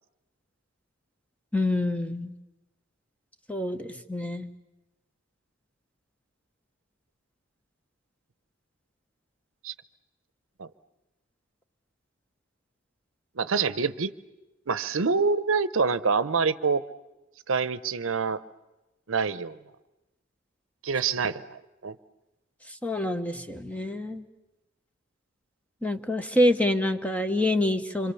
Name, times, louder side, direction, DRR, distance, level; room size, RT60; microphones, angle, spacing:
voice 1, 1.5-2.3 3.5-4.5 22.8-24.2 25.8-28.1, left 1 dB, 5° left, 7 dB, 1.0 m, -26 dB
voice 2, 13.4-14.1 14.7-16.8 17.5-18.4 19.1-19.6 20.8-22.0, right 5 dB, 85° right, 16 dB, 0.8 m, -26 dB
26.5 x 25.0 x 7.1 m, 1.0 s
head